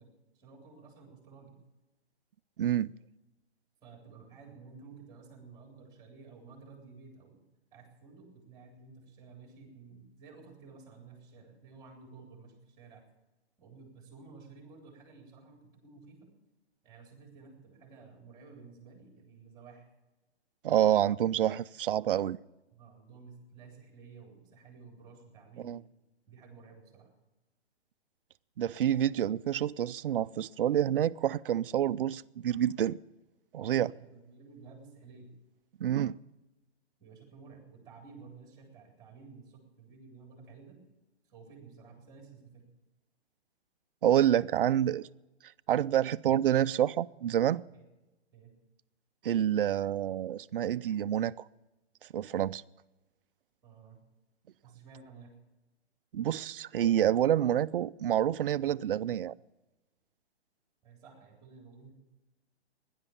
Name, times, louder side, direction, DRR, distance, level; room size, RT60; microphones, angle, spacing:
voice 1, 0.0-1.5 3.8-7.4 7.7-13.0 13.6-16.3 16.8-19.9 22.7-25.8 26.3-27.1 33.6-35.3 37.0-40.8 41.3-42.7 47.7-47.8 48.3-48.5 53.6-54.0 54.6-55.3 60.8-61.9, right 4 dB, 10° right, 3.8 m, -53 dB
voice 2, 2.6-2.9 20.6-22.4 25.6-25.8 28.6-33.0 33.5-33.9 35.8-36.2 44.0-45.1 45.7-47.6 49.2-51.3 52.1-52.6 56.1-59.3, right 11 dB, 55° right, 0.5 m, -28 dB
17.5 x 11.0 x 7.2 m
hypercardioid pair, 165°, 33 cm